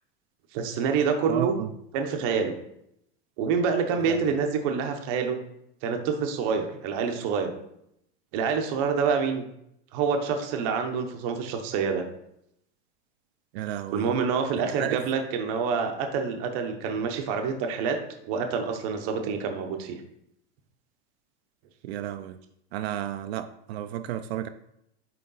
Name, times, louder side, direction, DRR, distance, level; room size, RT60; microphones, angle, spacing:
voice 1, 0.5-1.6 1.9-2.5 3.4-5.4 5.8-7.5 8.3-9.4 9.9-12.0 13.9-18.0 18.2-20.0, right 6 dB, 35° right, 5 dB, 0.7 m, -27 dB
voice 2, 1.3-1.7 4.1-4.2 13.5-14.1 14.8-15.0 21.8-22.4 22.7-24.5, right 11 dB, 75° right, 8 dB, 0.5 m, -32 dB
8.4 x 3.2 x 4.0 m, 0.77 s
supercardioid pair, 180°, 32 cm